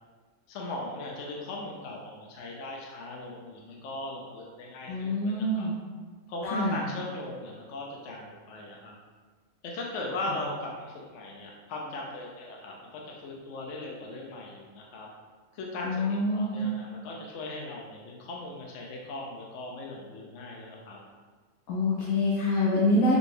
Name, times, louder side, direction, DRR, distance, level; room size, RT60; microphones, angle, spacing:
voice 1, 0.5-5.7 6.3-8.9 9.6-15.1 15.5-21.0, left 2 dB, 65° left, -1 dB, 0.8 m, -38 dB
voice 2, 4.9-5.8 6.5-6.8 15.8-16.7 21.7-23.2, left 1 dB, 85° left, -6 dB, 1.2 m, -26 dB
4.9 x 2.3 x 3.2 m, 1.4 s
omnidirectional pair, 1.4 m